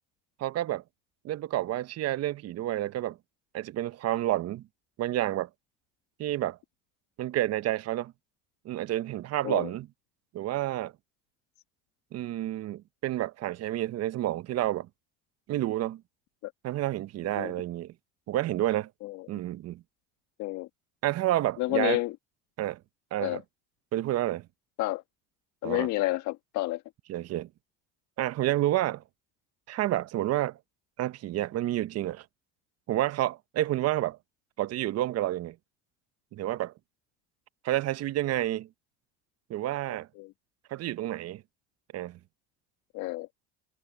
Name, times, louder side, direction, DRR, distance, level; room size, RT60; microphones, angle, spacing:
voice 1, 0.4-0.8 1.2-3.2 3.5-4.6 5.0-5.5 6.2-6.6 7.2-8.1 8.6-9.9 10.3-10.9 12.1-14.9 15.5-16.0 16.6-17.9 18.3-18.9 19.3-19.8 21.0-22.0 22.6-22.8 23.1-23.4 23.9-24.5 25.6-25.9 27.1-27.5 28.2-29.0 29.7-30.6 31.0-32.2 32.9-34.2 34.6-35.5 36.3-36.7 37.6-38.7 39.5-40.1 40.7-41.4 41.9-42.2, right 14 dB, 55° right, 1.0 m, -29 dB
voice 2, 21.6-22.1 23.2-23.4 24.8-25.0 25.6-26.8 40.2-40.3 42.9-43.3, left 19 dB, 70° left, 1.6 m, -30 dB
hypercardioid pair, 75°, 30 cm